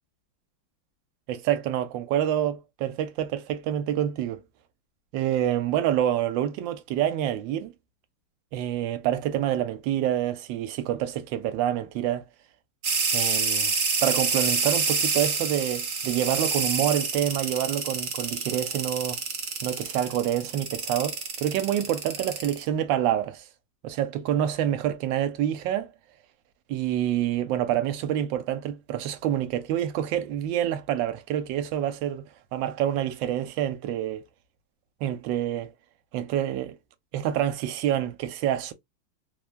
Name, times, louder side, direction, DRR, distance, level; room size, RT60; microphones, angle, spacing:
voice 1, 1.3-4.4 5.1-7.7 8.5-12.2 13.1-13.7 14.0-19.2 19.6-23.4 23.8-25.9 26.7-32.3 32.5-34.2 35.0-35.7 36.1-36.8 37.1-38.7, right 11 dB, 75° right, 1.3 m, -27 dB
sound 1, 12.8-22.6, right 5 dB, 55° right, 0.9 m, -27 dB
3.3 x 2.2 x 2.3 m
omnidirectional pair, 2.1 m